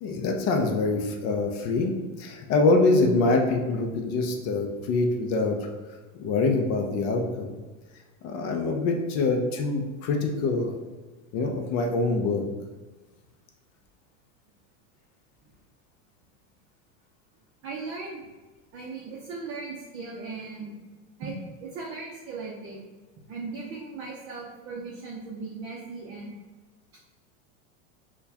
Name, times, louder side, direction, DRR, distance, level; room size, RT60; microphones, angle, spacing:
voice 1, 0.0-5.7 6.2-7.6 8.2-10.8 11.3-12.5, left 3 dB, 35° left, 2 dB, 0.4 m, -25 dB
voice 2, 17.6-18.3 18.7-20.7 21.2-21.3 21.6-22.8 23.3-26.3, right 4 dB, 35° right, -3 dB, 0.6 m, -37 dB
4.3 x 2.2 x 2.7 m, 1.3 s
supercardioid pair, 135°, 40 cm